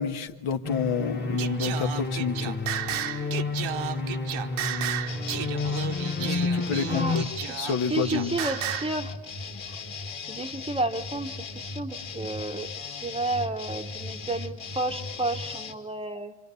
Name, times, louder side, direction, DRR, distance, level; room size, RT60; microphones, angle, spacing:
voice 1, 0.0-2.5 6.2-7.3 7.6-8.3, left 6 dB, 75° left, 5 dB, 1.6 m, -29 dB
sound 1, 0.6-7.2, left 3 dB, 20° left, 1.3 m, -30 dB
Singing, 1.4-9.0, right 11 dB, 70° right, 1.1 m, -33 dB
sound 2, 5.1-15.7, left 4 dB, 60° left, 2.6 m, -38 dB
voice 2, 6.9-7.6 7.9-9.2 10.3-16.4, right 2 dB, 10° right, 6 dB, 0.9 m, -32 dB
28.0 x 26.0 x 6.9 m, 1.1 s
cardioid pair, 125°, 50 cm